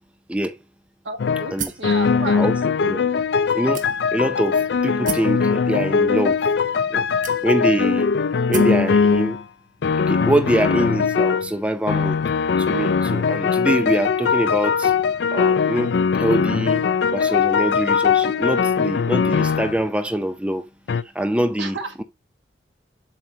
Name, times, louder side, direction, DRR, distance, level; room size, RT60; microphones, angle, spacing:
voice 1, 1.0-2.4 21.6-21.9, right 3 dB, 90° right, 1.6 m, -32 dB
sound 1, 1.2-1.5 1.8-9.4 9.8-11.5 11.9-19.8 20.9-21.0, left 6 dB, 70° left, 0.4 m, -20 dB
sound 2, 1.6-1.9 2.7-2.8 3.7-4.3 5.1-5.4 6.3-6.4 7.2-7.8 8.5-8.8, right 6 dB, 45° right, 0.9 m, -31 dB
voice 2, 3.5-6.4 6.9-7.1 7.4-8.1 8.5-9.4 10.1-12.2 12.6-14.9 15.3-16.8 17.1-20.7 21.1-22.0, right 1 dB, 5° right, 0.5 m, -24 dB
7.5 x 4.9 x 2.9 m
head